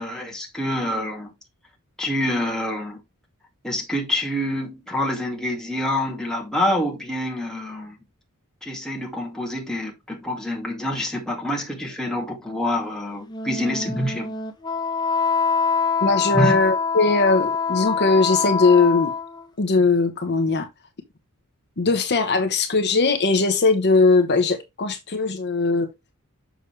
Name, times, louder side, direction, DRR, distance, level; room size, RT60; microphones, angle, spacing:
voice 1, 0.0-1.3 2.0-3.0 3.6-7.9 8.6-14.3 16.3-16.5, left 1 dB, 5° left, 2.2 m, -26 dB
Wind instrument woodwind instrument, 13.2-19.5, left 5 dB, 20° left, 1.1 m, -24 dB
voice 2, 16.0-19.1 19.6-20.7 21.8-25.9, left 3 dB, 50° left, 1.1 m, -19 dB
6.8 x 6.3 x 3.3 m
head